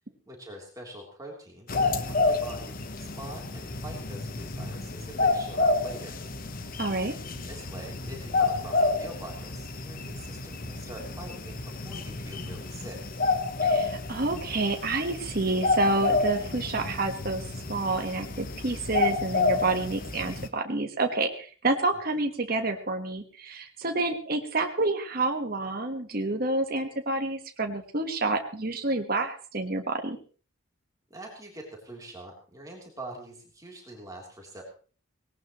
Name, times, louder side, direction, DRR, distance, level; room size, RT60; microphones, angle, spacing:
voice 1, 0.3-6.2 7.3-13.0 22.1-22.2 31.1-34.6, right 1 dB, 15° right, -1 dB, 3.4 m, -44 dB
sound 1, 1.7-20.5, left 3 dB, 40° left, 1.0 m, -30 dB
voice 2, 6.8-7.1 13.6-17.4 17.7-30.2, right 2 dB, 45° right, 4 dB, 1.4 m, -28 dB
18.5 x 18.0 x 3.1 m, 0.40 s
head